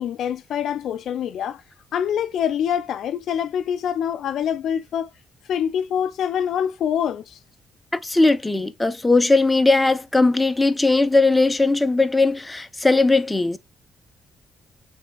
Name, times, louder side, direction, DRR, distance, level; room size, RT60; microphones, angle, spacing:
voice 1, 0.0-1.6 1.9-5.1 5.5-7.4, left 9 dB, 70° left, 0.4 m, -25 dB
voice 2, 7.9-13.6, left 3 dB, 15° left, 0.7 m, -19 dB
6.2 x 3.5 x 2.4 m
cardioid pair, 90°, 0 cm